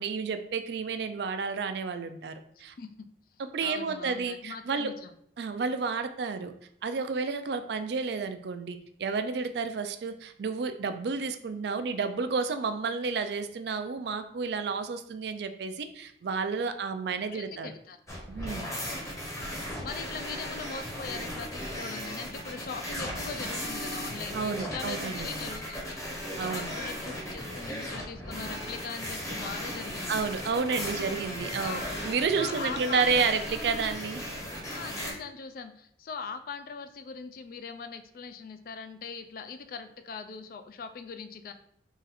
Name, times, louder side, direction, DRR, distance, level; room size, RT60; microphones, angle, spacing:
voice 1, 0.0-2.7 3.4-4.9 5.4-6.5 6.8-17.7 18.3-18.7 24.3-25.3 26.4-26.8 30.1-34.3, right 5 dB, 65° right, 9 dB, 0.4 m, -31 dB
voice 2, 3.3-5.1 17.3-18.0 18.7-19.0 19.6-30.2 30.8-31.2 31.6-31.8 32.4-33.3 34.7-41.5, left 5 dB, 50° left, 9 dB, 0.3 m, -41 dB
sound 1, 18.1-35.1, equal, 15° left, 0.9 m, -36 dB
3.9 x 2.5 x 4.0 m, 0.68 s
head